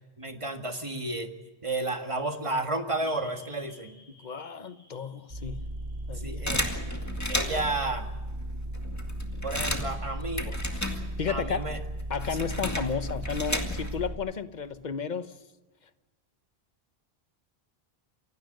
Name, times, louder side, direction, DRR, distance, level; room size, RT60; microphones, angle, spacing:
voice 1, 0.2-1.3 1.6-4.0 6.1-6.6 7.3-8.1 9.4-10.5 11.3-11.8 12.3-12.5, right 2 dB, 30° right, 1.9 m, -32 dB
sound 1, 3.1-7.5, left 2 dB, 65° left, 6.0 m, -55 dB
voice 2, 4.2-5.6 6.1-6.4 10.5-10.6 11.2-11.7 12.1-15.3, left 6 dB, 45° left, 1.1 m, -33 dB
sound 2, 5.3-14.2, right 1 dB, 70° right, 7.5 m, -36 dB
sound 3, 6.5-7.8 8.4-8.5 8.7-11.4 11.7-14.1, left 1 dB, 15° left, 2.0 m, -33 dB
28.0 x 17.0 x 6.6 m
omnidirectional pair, 1.0 m